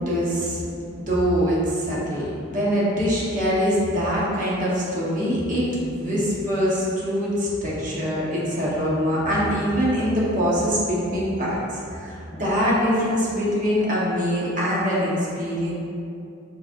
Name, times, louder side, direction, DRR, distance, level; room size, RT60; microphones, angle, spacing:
voice 1, 0.0-15.7, equal, 45° right, -6 dB, 1.0 m, -23 dB
5.8 x 3.2 x 2.5 m, 2.5 s
head